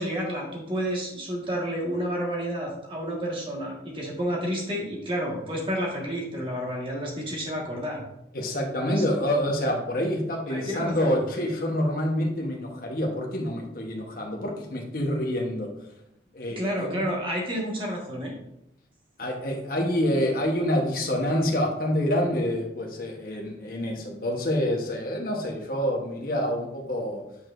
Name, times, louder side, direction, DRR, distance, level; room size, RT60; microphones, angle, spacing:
voice 1, 0.0-8.0 8.9-9.0 10.5-11.2 16.5-18.3, equal, 30° right, -2 dB, 1.5 m, -30 dB
voice 2, 8.3-15.7 16.3-16.9 19.2-27.2, equal, 55° left, 0 dB, 1.0 m, -27 dB
8.3 x 4.7 x 2.5 m, 0.80 s
head